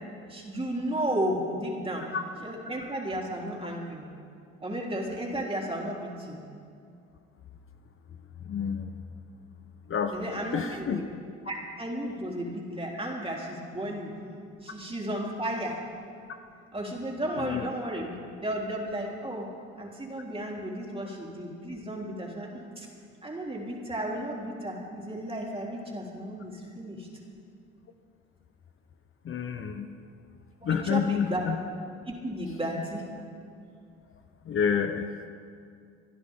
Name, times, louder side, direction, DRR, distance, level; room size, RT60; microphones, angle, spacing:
voice 1, 0.3-2.1 2.4-4.1 4.6-6.4 10.1-11.1 11.5-14.1 14.6-15.8 16.7-19.5 19.8-22.5 22.8-22.9 23.2-27.1 30.6-31.4 32.1-33.1, right 1 dB, 20° right, -2 dB, 3.7 m, -33 dB
voice 2, 8.5-8.9 9.9-10.1 10.5-11.0 17.4-17.7 29.3-29.9 30.6-31.6 34.5-35.3, left 7 dB, 45° left, 7 dB, 0.8 m, -28 dB
28.0 x 10.0 x 3.7 m, 2.3 s
supercardioid pair, 65°, 29 cm